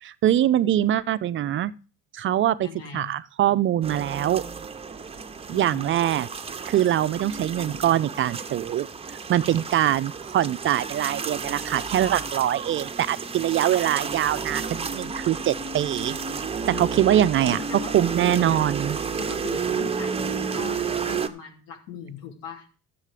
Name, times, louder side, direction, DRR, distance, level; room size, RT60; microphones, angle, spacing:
voice 1, 0.0-1.7 2.1-2.7 2.9-4.4 5.5-6.3 6.7-8.9 9.3-16.2 16.7-17.6 17.9-19.0, right 12 dB, 40° right, 0.4 m, -23 dB
voice 2, 2.6-3.1 5.5-5.8 16.7-17.0 17.3-18.7 19.2-22.8, left 7 dB, 85° left, 3.1 m, -39 dB
sound 1, 3.8-21.3, right 5 dB, 20° right, 0.8 m, -31 dB
12.5 x 7.5 x 5.0 m
cardioid pair, 110°, 33 cm